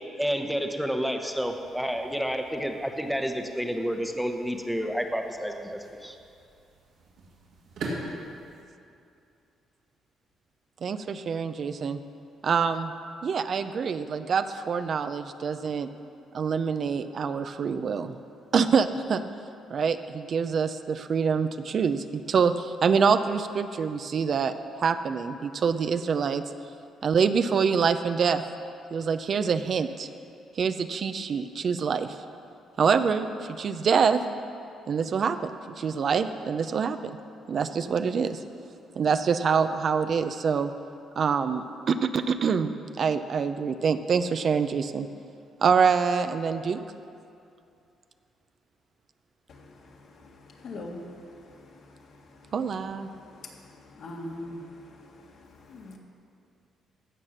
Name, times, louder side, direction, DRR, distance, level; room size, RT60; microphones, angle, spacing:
voice 1, 0.2-6.1, equal, ahead, 4 dB, 0.9 m, -30 dB
sound 1, 1.2-8.6, right 2 dB, 85° right, 2.7 m, -43 dB
voice 2, 10.8-12.0 12.4-12.9 13.2-15.9 16.3-18.2 18.5-19.2 19.7-26.4 27.0-28.4 28.9-30.1 30.6-32.2 32.8-34.2 34.9-37.1 37.5-38.4 38.9-40.7 41.2-45.1 45.6-46.8 52.5-53.1, right 6 dB, 55° right, 10 dB, 0.5 m, -25 dB
voice 3, 50.6-51.0 54.0-54.7 55.7-56.0, left 1 dB, 65° left, 0 dB, 1.8 m, -38 dB
16.0 x 5.8 x 6.5 m, 2.5 s
cardioid pair, 90°, 0 cm